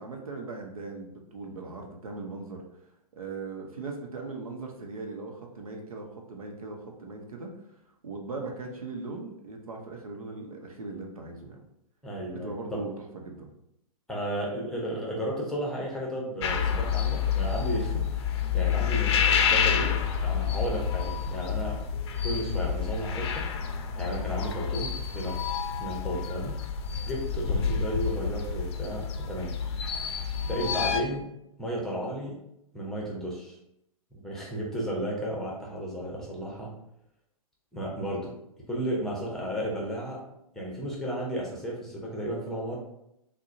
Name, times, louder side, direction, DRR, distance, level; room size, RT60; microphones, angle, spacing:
voice 1, 0.0-2.6 3.1-7.5 8.0-11.6 12.3-13.5 27.5-27.7, right 3 dB, 70° right, 2 dB, 0.8 m, -39 dB
voice 2, 12.0-12.9 14.1-21.8 22.2-23.4 24.0-25.4 25.7-26.6 27.0-29.5 30.5-31.3 31.6-32.4 32.7-33.6 34.1-36.7 37.7-38.3 38.7-40.2 40.5-42.8, equal, 5° left, -4 dB, 0.9 m, -33 dB
sound 1, 16.4-31.0, left 7 dB, 45° left, 0.5 m, -28 dB
6.1 x 2.2 x 2.6 m, 0.80 s
figure-of-eight pair, 110°, 19 cm